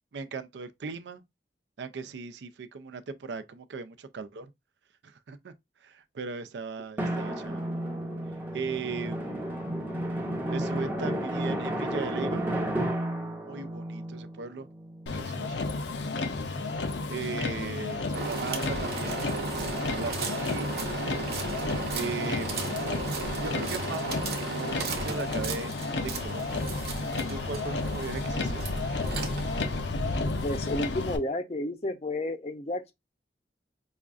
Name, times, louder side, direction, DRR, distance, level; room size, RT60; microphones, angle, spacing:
voice 1, 0.1-1.2 1.8-4.5 5.0-5.5 5.8-7.7 8.5-9.6 10.5-12.4 13.4-14.7 15.1-15.6 17.1-19.3 19.9-20.7 21.9-25.8 26.0-26.6 27.3-28.6, right 4 dB, 85° right, 0.4 m, -38 dB
Drum, 7.0-15.3, right 1 dB, 10° right, 0.6 m, -32 dB
Motor vehicle (road), 15.1-31.2, left 3 dB, 85° left, 0.6 m, -32 dB
sound 1, 18.1-29.8, right 4 dB, 60° right, 0.8 m, -35 dB
voice 2, 30.4-32.9, left 1 dB, 35° left, 0.5 m, -31 dB
5.0 x 2.4 x 2.4 m
head